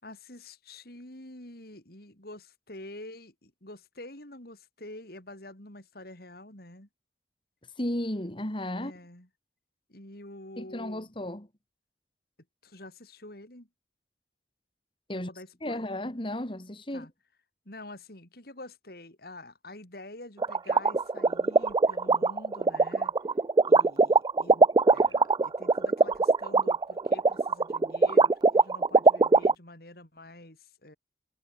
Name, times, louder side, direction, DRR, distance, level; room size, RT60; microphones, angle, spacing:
voice 1, 0.0-6.9 8.8-9.3 9.9-11.1 12.6-13.7 15.1-16.0 16.9-17.1 17.7-23.2 23.7-31.0, left 1 dB, 60° left, 5.3 m, -47 dB
voice 2, 7.8-8.9 10.6-11.5 15.1-15.3 15.6-17.1, left 1 dB, 30° left, 2.6 m, -34 dB
sound 1, 20.4-29.5, right 3 dB, 25° right, 0.3 m, -21 dB
head